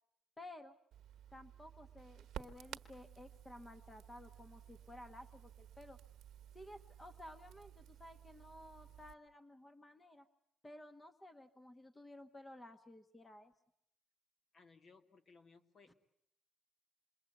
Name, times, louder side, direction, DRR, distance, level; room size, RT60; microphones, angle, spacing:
voice 1, 0.4-0.8 1.3-6.0 6.5-10.3 10.6-13.5 15.9-16.0, left 1 dB, 20° left, 9 dB, 1.2 m, -55 dB
Crackle, 0.9-9.1, right 11 dB, 75° right, 1.1 m, -55 dB
voice 2, 14.5-15.9, left 4 dB, 50° left, 8 dB, 2.2 m, -63 dB
27.0 x 22.5 x 8.1 m, 0.76 s
cardioid pair, 90°, 0 cm